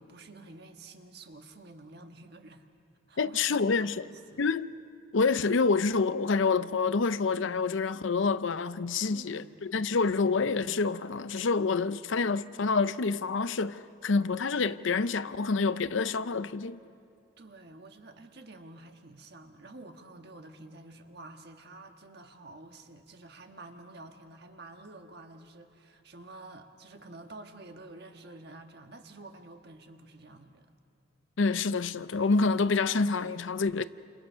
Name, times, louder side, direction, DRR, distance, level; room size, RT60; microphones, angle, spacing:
voice 1, 0.0-2.7 3.1-4.4 9.1-9.6 17.4-30.7, right 2 dB, 50° right, 1.5 m, -49 dB
voice 2, 3.2-4.0 4.4-4.7 5.1-16.8 31.4-33.8, left 4 dB, 70° left, 0.6 m, -27 dB
29.5 x 28.0 x 5.7 m
head